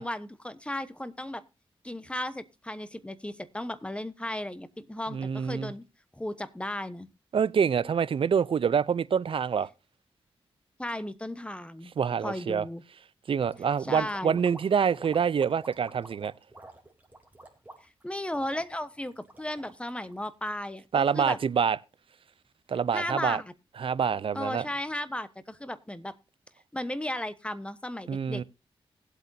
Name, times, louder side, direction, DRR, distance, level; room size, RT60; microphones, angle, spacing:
voice 1, 0.0-1.4 1.8-5.8 6.1-7.1 10.8-11.9 12.2-12.8 13.8-14.4 18.0-21.4 22.9-23.5 24.3-26.1 26.7-28.4, left 1 dB, 10° left, 1.1 m, -35 dB
voice 2, 5.1-5.7 7.3-9.7 12.0-12.7 13.3-16.3 20.9-21.8 22.7-23.4 23.8-24.7 28.1-28.4, right 7 dB, 60° right, 0.6 m, -26 dB
sound 1, 13.4-20.7, right 2 dB, 15° right, 3.2 m, -50 dB
18.5 x 8.0 x 2.7 m
cardioid pair, 75°, 10 cm